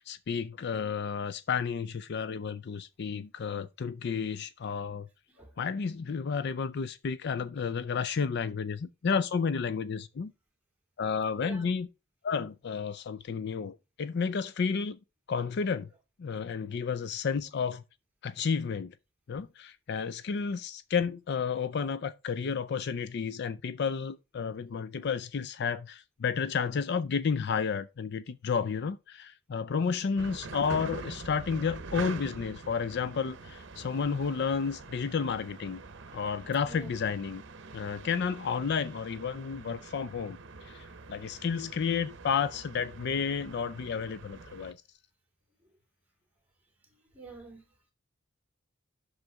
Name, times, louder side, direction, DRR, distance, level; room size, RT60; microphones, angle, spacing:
voice 1, 0.0-5.1 5.6-10.3 11.0-11.9 12.2-15.0 15.3-15.9 16.2-17.8 18.2-18.9 19.3-35.8 36.1-37.4 37.7-40.4 40.6-44.8, left 6 dB, 55° left, 0.4 m, -31 dB
voice 2, 11.3-11.7 29.9-30.3 36.7-37.0 47.1-47.6, right 4 dB, 10° right, 2.6 m, -47 dB
sound 1, 30.2-44.7, right 4 dB, 65° right, 0.8 m, -45 dB
7.8 x 6.5 x 3.5 m
head